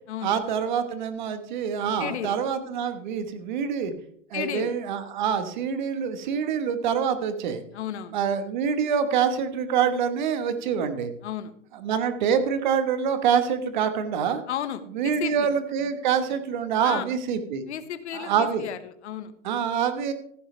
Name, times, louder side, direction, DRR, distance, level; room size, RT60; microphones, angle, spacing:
voice 1, 0.2-3.9 4.3-7.6 8.1-11.1 11.7-14.4 14.9-17.6 18.1-18.7 19.4-20.1, right 7 dB, 35° right, 10 dB, 1.3 m, -26 dB
voice 2, 2.0-2.4 4.3-4.7 7.7-8.2 11.2-11.5 14.5-15.5 16.8-17.0 17.7-18.8 19.0-19.3, left 10 dB, 60° left, 11 dB, 1.3 m, -33 dB
15.0 x 10.0 x 3.3 m, 0.64 s
hypercardioid pair, 175°, 38 cm